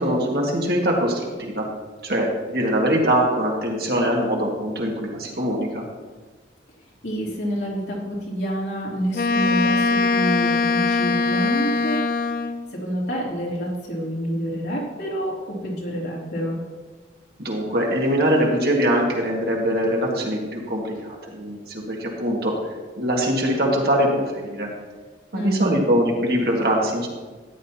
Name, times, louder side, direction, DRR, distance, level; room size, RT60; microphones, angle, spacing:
voice 1, 0.0-1.7 2.0-5.8 17.4-22.5 23.0-24.7 25.3-27.1, equal, 60° right, -1 dB, 2.0 m, -22 dB
voice 2, 7.0-12.0 12.7-16.6 25.3-25.8, equal, 80° left, -4 dB, 3.1 m, -28 dB
Wind instrument woodwind instrument, 9.1-12.7, left 4 dB, 50° left, 0.4 m, -21 dB
13.5 x 10.0 x 2.9 m, 1.3 s
head